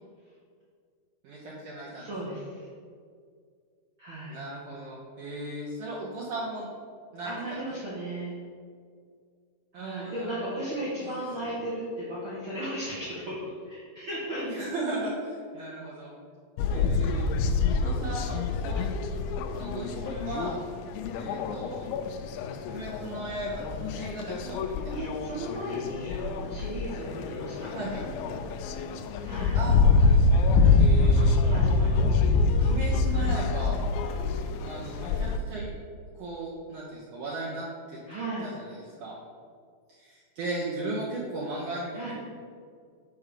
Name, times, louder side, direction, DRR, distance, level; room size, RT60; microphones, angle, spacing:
voice 1, 1.2-2.0 4.3-6.7 7.1-7.3 9.7-10.3 11.0-11.5 14.5-16.1 16.7-17.2 17.7-18.9 19.6-20.6 21.1-21.8 22.7-25.0 27.7-28.0 29.5-30.4 30.8-31.4 32.6-33.7 34.7-35.7 36.1-38.0 38.4-39.2 39.9-42.1, right 2 dB, 85° right, -6 dB, 1.8 m, -37 dB
voice 2, 1.9-2.7 4.0-4.4 7.2-8.3 9.7-14.5 24.9-27.7 29.2-29.6 31.1-32.2 33.1-33.3 38.1-38.5 41.9-42.1, right 1 dB, 65° right, -10 dB, 1.2 m, -36 dB
sound 1, 16.6-35.4, left 3 dB, 85° left, 2.9 m, -25 dB
7.2 x 5.0 x 6.7 m, 2.1 s
omnidirectional pair, 5.4 m